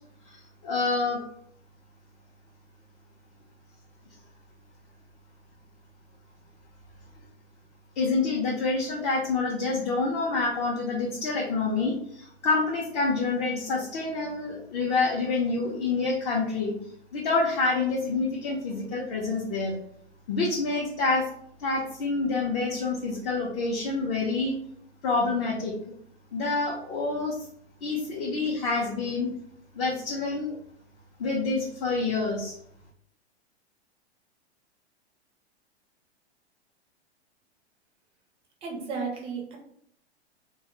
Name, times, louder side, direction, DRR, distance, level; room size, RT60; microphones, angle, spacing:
voice 1, 0.3-1.2 8.0-16.7 17.1-19.7 20.3-21.3 21.6-24.6 25.0-25.7 26.3-27.4 27.8-29.3 29.7-30.6 31.2-32.5, left 3 dB, 40° left, -3 dB, 0.6 m, -27 dB
voice 2, 38.6-39.6, right 5 dB, 15° right, 1 dB, 0.5 m, -33 dB
2.3 x 2.1 x 2.9 m, 0.68 s
figure-of-eight pair, 105°, 34 cm